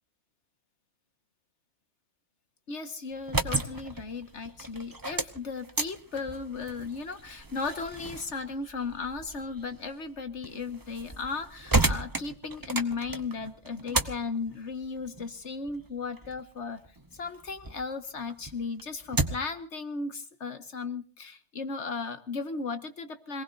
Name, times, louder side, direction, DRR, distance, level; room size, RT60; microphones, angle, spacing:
voice 1, 2.7-16.8 17.1-23.4, left 4 dB, 75° left, 7 dB, 1.9 m, -36 dB
sound 1, 3.1-17.8 18.2-19.6, right 2 dB, 20° right, 0.9 m, -34 dB
26.0 x 19.0 x 2.7 m, 0.38 s
omnidirectional pair, 1.2 m